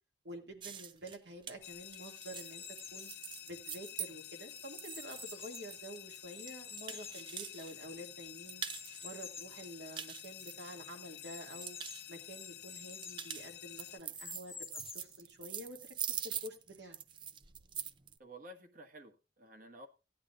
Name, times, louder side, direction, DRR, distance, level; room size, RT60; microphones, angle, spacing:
voice 1, 0.2-2.6 2.9-3.1 3.5-8.6 9.0-11.8 12.1-15.8 16.1-17.0, equal, 70° right, 3 dB, 2.2 m, -49 dB
sound 1, 0.6-7.7 8.0-9.0 9.4-11.1 11.4-12.0 12.8-18.1, right 8 dB, 25° right, 0.4 m, -44 dB
sound 2, 1.6-14.0, left 12 dB, 60° left, 0.5 m, -50 dB
sound 3, 2.2-3.2 3.8-5.8 6.3-8.0 8.6-9.6 10.1-10.2 10.4-10.5 11.2-13.3 13.8-15.2, left 5 dB, 15° left, 0.7 m, -51 dB
voice 2, 18.2-19.9, right 1 dB, 50° right, 5 dB, 1.6 m, -52 dB
16.5 x 10.0 x 2.5 m, 0.30 s
head